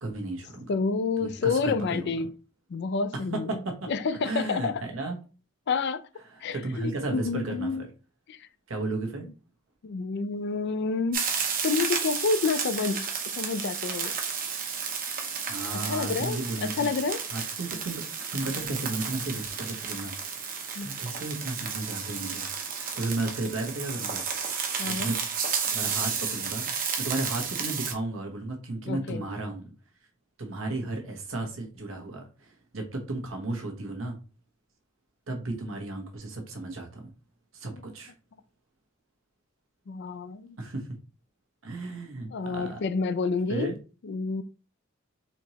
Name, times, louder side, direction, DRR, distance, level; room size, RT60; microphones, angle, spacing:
voice 1, 0.0-0.7 1.2-2.3 3.1-3.9 4.2-5.2 6.3-7.9 8.7-9.3 15.4-16.9 17.3-18.1 18.3-22.5 22.7-24.2 24.8-25.2 25.7-26.7 27.0-29.7 30.4-34.2 35.3-37.1 37.5-38.1 40.6-40.9 41.6-42.8 43.5-43.8, right 2 dB, 80° right, 1.1 m, -34 dB
voice 2, 0.7-2.3 2.7-3.6 3.9-4.8 5.7-6.0 6.4-7.8 8.3-8.4 9.8-11.2 11.6-14.1 15.8-17.2 20.8-20.9 24.8-25.1 28.9-29.2 37.7-37.8 39.9-40.6 42.3-43.7 44.0-44.4, left 4 dB, 60° left, 0.4 m, -29 dB
sound 1, 11.1-27.9, right 6 dB, 45° right, 0.8 m, -32 dB
4.2 x 3.0 x 2.8 m
head